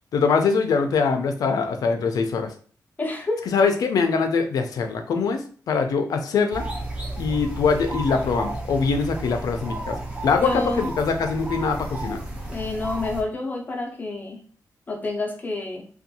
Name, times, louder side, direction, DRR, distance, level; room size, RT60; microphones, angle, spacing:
voice 1, 0.1-2.5 3.5-6.6 7.2-12.2, left 5 dB, 80° left, 6 dB, 0.4 m, -23 dB
voice 2, 3.0-3.4 10.4-10.9 12.5-14.4 14.9-15.8, left 2 dB, 25° left, 2 dB, 0.5 m, -28 dB
sound 1, 6.5-13.2, right 2 dB, 20° right, 0.6 m, -32 dB
2.6 x 2.2 x 2.7 m, 0.43 s
wide cardioid pair, 150°, 6 cm